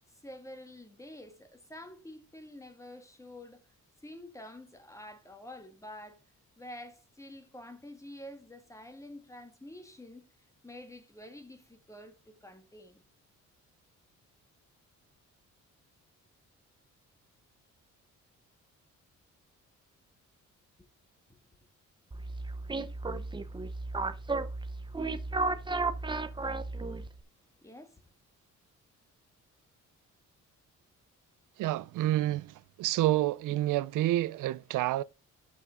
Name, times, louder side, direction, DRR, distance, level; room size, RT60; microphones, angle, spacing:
voice 1, 0.1-3.6 4.0-6.2 6.6-10.3 10.6-13.0 27.6-28.0, left 1 dB, 10° left, 1.5 m, -48 dB
sound 1, 22.1-27.2, right 3 dB, 15° right, 0.7 m, -34 dB
voice 2, 31.6-35.0, right 15 dB, 85° right, 0.5 m, -29 dB
12.0 x 5.8 x 3.7 m
cardioid pair, 130°, 31 cm